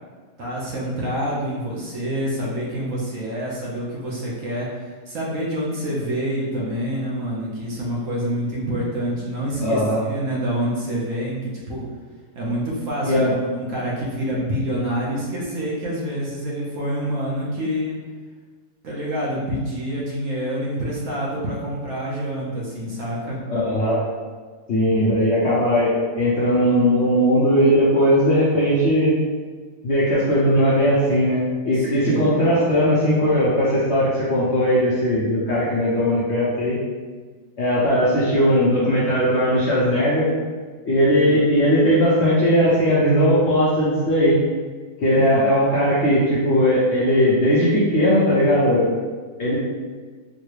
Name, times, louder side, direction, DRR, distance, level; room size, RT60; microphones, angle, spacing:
voice 1, 0.4-11.8 12.3-18.0 18.8-23.4 31.7-32.2 41.2-41.4 45.1-45.5, equal, 60° right, -5 dB, 1.0 m, -27 dB
voice 2, 9.6-10.0 13.1-13.3 23.5-24.0 24.7-29.1 29.8-31.4 31.7-36.8 37.6-40.3 40.9-44.4 45.0-48.9 49.4-49.6, equal, 60° left, -8 dB, 0.8 m, -18 dB
4.0 x 2.2 x 3.1 m, 1.5 s
omnidirectional pair, 1.7 m